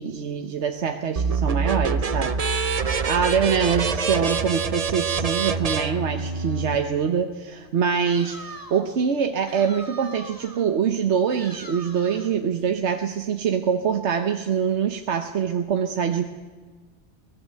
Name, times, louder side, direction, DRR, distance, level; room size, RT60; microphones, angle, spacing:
voice 1, 0.0-2.4 3.1-16.2, right 7 dB, 85° right, 6 dB, 1.3 m, -24 dB
sound 1, 1.2-6.8, right 5 dB, 40° right, 0.8 m, -25 dB
sound 2, 8.1-8.9 9.5-10.7 11.3-12.4, right 2 dB, 20° right, 1.5 m, -42 dB
23.5 x 18.5 x 7.7 m, 1.4 s
omnidirectional pair, 1.1 m